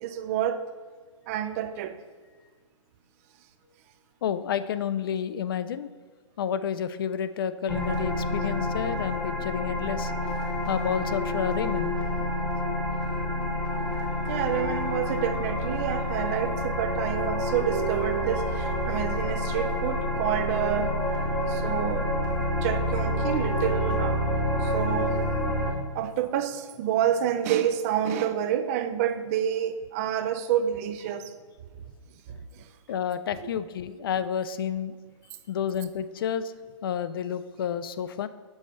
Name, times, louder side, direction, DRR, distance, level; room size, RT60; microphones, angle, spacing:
voice 1, 0.0-0.6 1.3-2.0 14.3-21.0 21.5-22.1 22.6-24.2 24.6-25.2 25.9-31.3 32.3-32.7, right 10 dB, 30° right, 9 dB, 0.5 m, -28 dB
voice 2, 4.2-5.9 6.4-10.1 10.7-12.0 32.9-34.9 35.5-36.5 36.8-38.3, left 8 dB, 45° left, 13 dB, 0.4 m, -30 dB
sound 1, 7.7-25.7, equal, 5° left, 0.8 m, -28 dB
7.1 x 5.5 x 4.4 m, 1.5 s
figure-of-eight pair, 125°, 16 cm